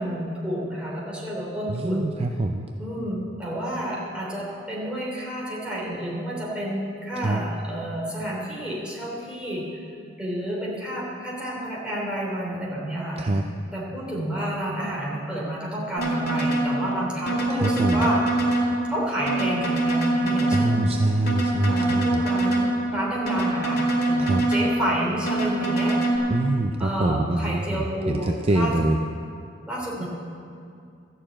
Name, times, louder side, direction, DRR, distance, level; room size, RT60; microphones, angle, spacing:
voice 1, 0.0-2.2 2.8-9.8 10.2-13.2 13.7-18.3 18.9-20.9 21.7-26.3 26.8-28.9 29.7-30.1, equal, 5° right, -5 dB, 3.1 m, -30 dB
voice 2, 1.7-2.7 7.2-7.4 13.2-13.4 17.5-18.1 20.5-22.2 24.2-24.5 26.3-29.0, right 2 dB, 30° right, 5 dB, 0.5 m, -24 dB
sound 1, 16.0-16.7 17.3-18.7 19.3-20.7 21.3-22.7 23.3-24.7 25.3-26.2, right 2 dB, 55° left, 2.4 m, -24 dB
13.0 x 6.8 x 8.7 m, 2.4 s
head